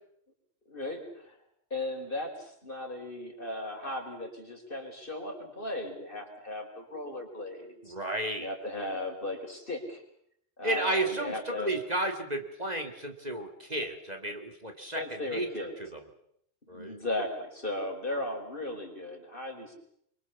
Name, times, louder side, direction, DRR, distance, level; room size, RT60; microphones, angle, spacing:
voice 1, 0.7-1.4 1.7-7.9 8.4-10.0 10.6-11.7 14.9-15.7 16.7-19.7, left 1 dB, 45° left, 2 dB, 5.0 m, -36 dB
voice 2, 7.8-8.5 10.6-15.5 15.8-16.0 16.7-17.0, right 1 dB, 35° right, 5 dB, 2.3 m, -33 dB
26.5 x 24.0 x 7.1 m, 0.72 s
omnidirectional pair, 1.3 m